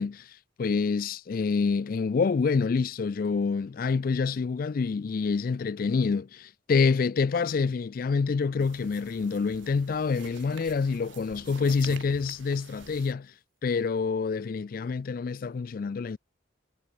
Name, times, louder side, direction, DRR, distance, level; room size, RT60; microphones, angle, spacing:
voice 1, 0.0-13.3 13.6-16.2, left 5 dB, 45° left, 0.3 m, -27 dB
sound 1, 8.6-13.1, right 5 dB, 70° right, 1.2 m, -47 dB
head